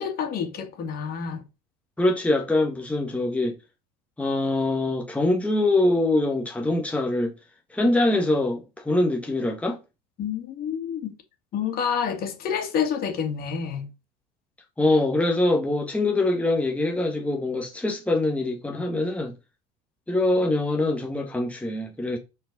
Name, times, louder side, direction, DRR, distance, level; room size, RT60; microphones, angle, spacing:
voice 1, 0.0-1.4 10.2-11.1 11.5-13.9, left 7 dB, 50° left, 2.4 m, -28 dB
voice 2, 2.0-3.5 4.2-7.3 7.7-9.8 14.8-19.3 20.1-22.2, left 2 dB, 5° left, 1.4 m, -23 dB
5.8 x 4.7 x 5.3 m
supercardioid pair, 95°, 20 cm